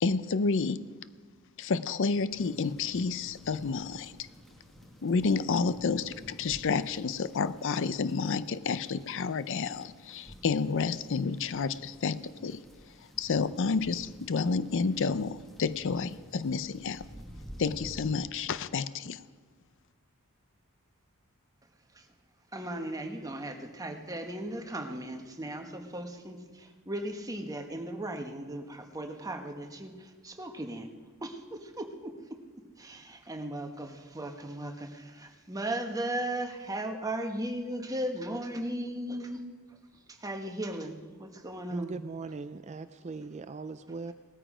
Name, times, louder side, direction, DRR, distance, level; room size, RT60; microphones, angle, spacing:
voice 1, 0.0-0.8 1.6-4.3 5.0-12.6 13.2-17.0 17.6-19.2, left 4 dB, 60° left, 15 dB, 0.5 m, -30 dB
sound 1, 2.3-18.2, equal, ahead, 1.4 m, -51 dB
voice 2, 22.5-30.9 31.2-32.4 32.8-39.4 40.1-42.0, right 1 dB, 15° right, 4 dB, 1.3 m, -37 dB
voice 3, 41.7-44.1, right 3 dB, 30° right, 11 dB, 0.4 m, -39 dB
18.0 x 13.5 x 5.0 m, 1.4 s
head